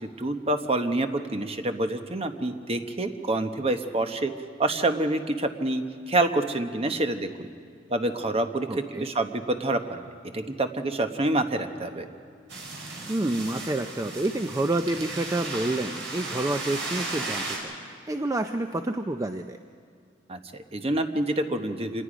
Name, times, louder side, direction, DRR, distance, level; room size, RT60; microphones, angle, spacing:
voice 1, 0.0-4.3 4.6-7.5 7.9-8.7 8.9-10.0 10.3-12.1 20.3-22.0, right 2 dB, 35° right, 7 dB, 1.0 m, -27 dB
voice 2, 8.7-9.1 13.1-19.6, right 2 dB, 15° right, 7 dB, 0.4 m, -29 dB
sound 1, 12.5-17.6, right 3 dB, 70° right, 4.5 m, -35 dB
26.0 x 20.0 x 5.1 m, 2.4 s
head